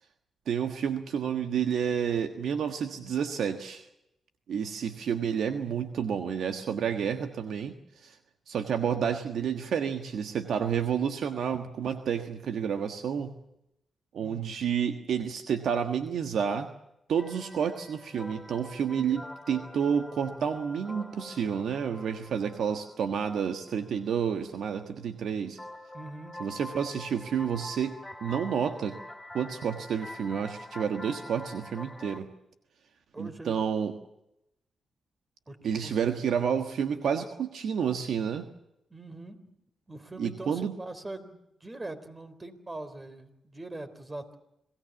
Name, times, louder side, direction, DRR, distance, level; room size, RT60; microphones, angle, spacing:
voice 1, 0.5-3.9 4.5-7.7 8.0-8.2 8.5-13.3 14.1-16.7 17.1-25.6 26.4-27.9 28.2-29.0 29.3-32.3 33.2-33.9 35.6-38.4 40.2-40.7, right 7 dB, 75° right, 7 dB, 1.4 m, -30 dB
voice 2, 14.2-14.5 25.9-26.4 33.1-33.6 35.5-36.0 38.9-39.6 39.9-44.3, right 2 dB, 30° right, 10 dB, 3.8 m, -42 dB
sound 1, 17.2-24.6 25.6-32.2, left 1 dB, 10° left, 3.4 m, -45 dB
26.5 x 18.0 x 7.2 m, 0.83 s
supercardioid pair, 50°, 0 cm